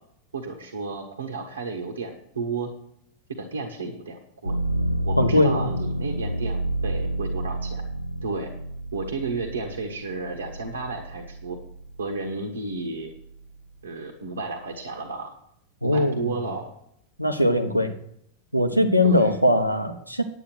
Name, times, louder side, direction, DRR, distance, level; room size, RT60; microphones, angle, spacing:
voice 1, 0.3-2.7 3.4-4.6 5.0-7.8 8.2-8.5 8.9-11.6 12.0-13.1 13.8-15.3 15.8-16.7 19.0-19.4, right 3 dB, 70° right, 3 dB, 1.3 m, -32 dB
sound 1, 4.5-12.3 12.8-13.6, right 1 dB, 85° left, 0.4 m, -30 dB
voice 2, 5.2-5.6 15.8-16.3 17.2-17.9 18.5-20.2, left 1 dB, 90° right, 8 dB, 1.1 m, -21 dB
9.5 x 9.0 x 6.0 m, 0.72 s
figure-of-eight pair, 90°, 0 cm